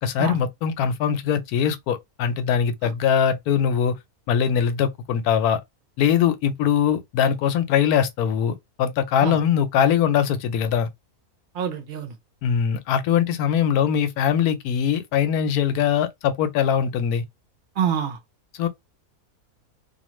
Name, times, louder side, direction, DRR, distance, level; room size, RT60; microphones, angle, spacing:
voice 1, 0.0-4.0 4.3-5.6 6.0-10.9 12.4-17.2 18.5-18.7, left 8 dB, 85° left, 1.1 m, -22 dB
voice 2, 11.5-12.1 17.8-18.2, right 8 dB, 50° right, 0.6 m, -26 dB
2.5 x 2.4 x 3.0 m
omnidirectional pair, 1.6 m